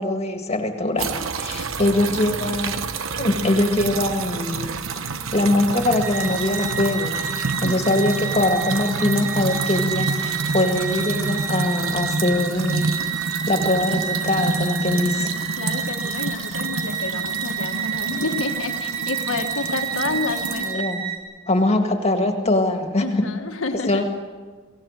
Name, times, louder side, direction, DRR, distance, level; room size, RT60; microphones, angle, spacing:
voice 1, 0.0-2.8 3.2-4.7 5.0-7.2 7.6-12.9 13.2-15.3 20.7-21.0 21.5-23.0 23.9-24.0, left 1 dB, 35° left, 4 dB, 1.9 m, -22 dB
sound 1, 1.0-20.7, right 4 dB, 90° right, 1.0 m, -28 dB
sound 2, 5.8-21.2, right 6 dB, 70° right, 3.5 m, -30 dB
voice 2, 7.6-8.0 15.6-20.8 23.0-24.0, left 3 dB, 75° left, 4 dB, 1.4 m, -29 dB
24.5 x 17.0 x 7.5 m, 1.4 s
head